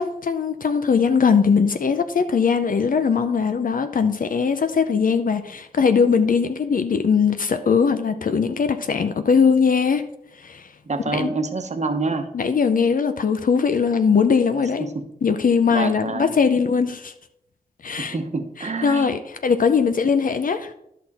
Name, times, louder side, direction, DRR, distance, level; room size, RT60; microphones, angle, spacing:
voice 1, 0.0-10.0 10.4-10.7 11.1-11.3 12.3-14.9 15.2-17.1 17.8-18.2 18.6-20.7, left 6 dB, 60° left, 9 dB, 0.6 m, -20 dB
voice 2, 10.9-12.3 14.9-15.1 15.7-16.4 18.0-19.2, right 3 dB, 45° right, 7 dB, 1.0 m, -27 dB
11.0 x 5.9 x 4.2 m, 0.79 s
wide cardioid pair, 95°, 16 cm